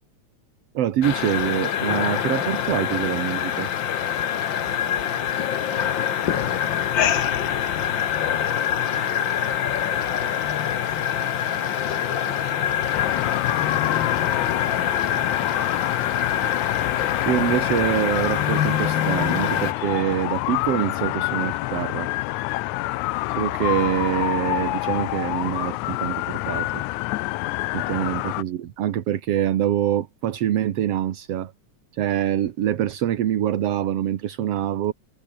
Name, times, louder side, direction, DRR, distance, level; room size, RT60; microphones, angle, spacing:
voice 1, 0.7-3.7 17.3-22.1 23.4-26.8 27.7-31.5 31.9-34.9, right 11 dB, 60° right, 2.1 m, -25 dB
sound 1, 1.0-19.7, left 9 dB, 55° left, 1.3 m, -24 dB
voice 2, 4.5-8.0 8.8-12.8 13.4-14.5 15.1-15.9 22.8-22.9 27.9-28.1, right 3 dB, 35° right, 6.5 m, -47 dB
sound 2, 12.9-28.4, left 19 dB, 80° left, 1.9 m, -27 dB
omnidirectional pair, 3.5 m